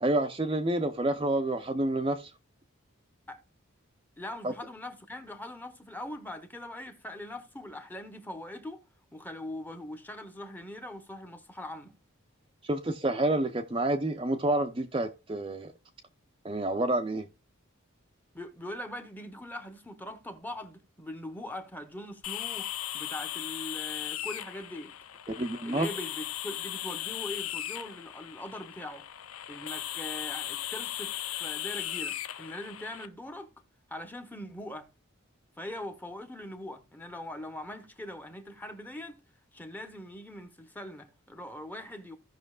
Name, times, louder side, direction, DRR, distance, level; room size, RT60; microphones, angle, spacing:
voice 1, 0.0-2.3 4.4-4.5 12.7-15.7 16.4-17.3 25.4-25.9, right 1 dB, 25° right, 0.6 m, -28 dB
voice 2, 4.2-8.8 9.1-11.9 18.3-22.7 22.9-24.9 25.6-29.0 29.5-33.5 33.9-34.9 35.6-39.2 39.5-42.2, left 1 dB, 10° left, 0.9 m, -41 dB
sound 1, 22.2-33.1, left 13 dB, 80° left, 0.5 m, -37 dB
16.0 x 5.8 x 2.3 m
head